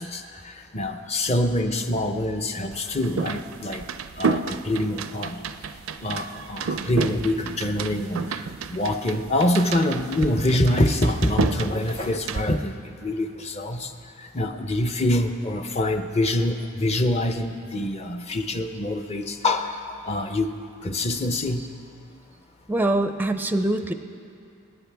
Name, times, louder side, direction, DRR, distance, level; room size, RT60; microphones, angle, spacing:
voice 1, 0.0-3.8 4.2-5.4 6.0-13.9 14.3-20.6 20.8-21.6, left 1 dB, 30° left, 6 dB, 0.7 m, -25 dB
sound 1, 2.7-12.4, right 5 dB, 75° right, 0.4 m, -31 dB
voice 2, 22.7-23.9, right 1 dB, 10° right, 8 dB, 0.4 m, -23 dB
25.5 x 10.0 x 3.5 m, 2.5 s
head